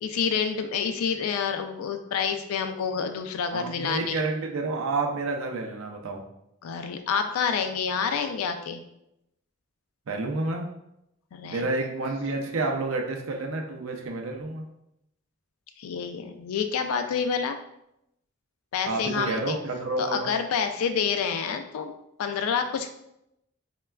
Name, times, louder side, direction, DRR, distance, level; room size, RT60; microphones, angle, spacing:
voice 1, 0.0-4.2 6.6-8.8 11.3-11.7 15.8-17.6 18.7-19.6 20.0-21.9 22.2-22.9, left 6 dB, 90° left, 8 dB, 0.3 m, -28 dB
voice 2, 3.5-6.2 10.1-10.7 11.4-14.6 18.9-20.3, right 3 dB, 70° right, 2 dB, 0.5 m, -29 dB
3.3 x 2.2 x 2.2 m, 0.82 s
head